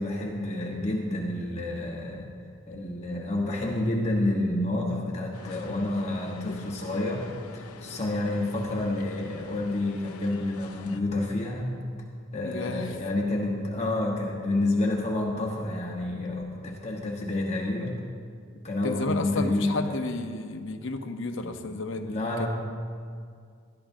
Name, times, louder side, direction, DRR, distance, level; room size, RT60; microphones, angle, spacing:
voice 1, 0.0-2.3 2.7-11.8 12.3-18.0 18.5-20.0 21.4-21.6 22.0-22.5, left 2 dB, 30° left, -2 dB, 1.1 m, -29 dB
sound 1, 5.3-11.0, left 5 dB, 85° left, 0.6 m, -47 dB
voice 2, 12.4-13.0 18.8-22.5, left 2 dB, 60° left, 6 dB, 0.8 m, -32 dB
20.0 x 12.5 x 2.7 m, 2.2 s
head